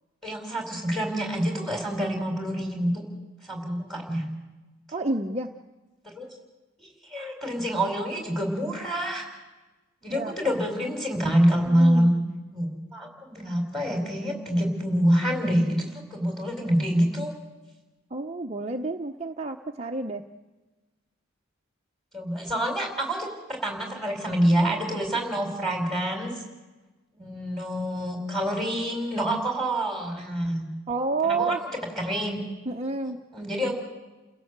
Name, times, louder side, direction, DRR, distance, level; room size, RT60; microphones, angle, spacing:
voice 1, 0.2-3.0 3.4-4.3 6.0-6.3 6.8-9.3 10.0-12.1 12.5-17.3 22.1-26.4 27.2-30.7 31.2-31.6 32.0-32.4 33.3-33.8, equal, ahead, 2 dB, 4.5 m, -26 dB
voice 2, 4.9-5.5 10.1-10.6 11.7-12.1 18.1-20.2 30.9-31.6 32.7-33.2, right 3 dB, 30° right, 3 dB, 0.8 m, -29 dB
29.5 x 16.0 x 8.1 m, 1.2 s
head